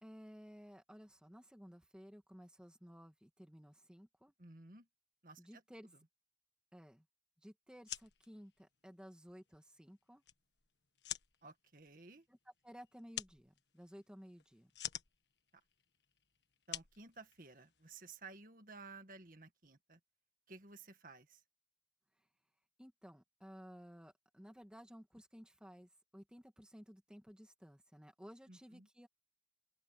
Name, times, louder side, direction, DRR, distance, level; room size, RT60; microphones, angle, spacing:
voice 1, 0.0-4.3 5.4-5.9 6.7-7.1 7.4-10.2 12.3-12.4 12.6-14.7 22.8-29.1, equal, 5° right, 2.2 m, -56 dB
voice 2, 4.4-4.9 5.2-5.6 11.4-12.3 15.5-15.6 16.7-20.0 20.5-21.4 28.5-28.9, right 3 dB, 50° right, 1.8 m, -55 dB
sound 1, 7.7-17.9, left 11 dB, 85° left, 1.5 m, -50 dB
open air
head